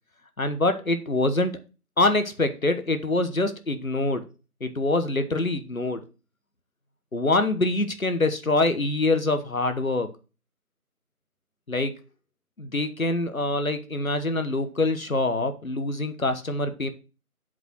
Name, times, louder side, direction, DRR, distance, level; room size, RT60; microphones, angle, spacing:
voice 1, 0.4-1.6 2.0-4.3 4.6-6.0 7.1-10.1 11.7-12.0 12.6-16.9, left 2 dB, 65° left, 9 dB, 1.3 m, -25 dB
7.7 x 5.2 x 6.2 m, 0.32 s
figure-of-eight pair, 175°, 45 cm